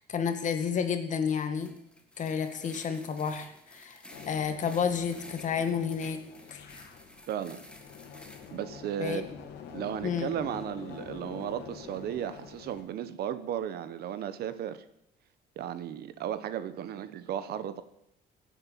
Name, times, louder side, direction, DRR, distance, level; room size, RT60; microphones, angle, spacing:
voice 1, 0.0-1.7 2.2-4.0 4.3-6.2 6.5-6.6 9.0-9.2 10.0-10.3, left 7 dB, 45° left, 8 dB, 1.9 m, -30 dB
sound 1, 1.5-8.6, left 1 dB, 5° left, 2.2 m, -52 dB
sound 2, 4.1-12.8, left 7 dB, 80° left, 2.3 m, -46 dB
voice 2, 7.3-7.6 8.5-9.2 9.7-14.8 15.6-17.8, right 10 dB, 70° right, 12 dB, 1.2 m, -35 dB
17.0 x 8.1 x 7.6 m, 0.76 s
cardioid pair, 110°, 17 cm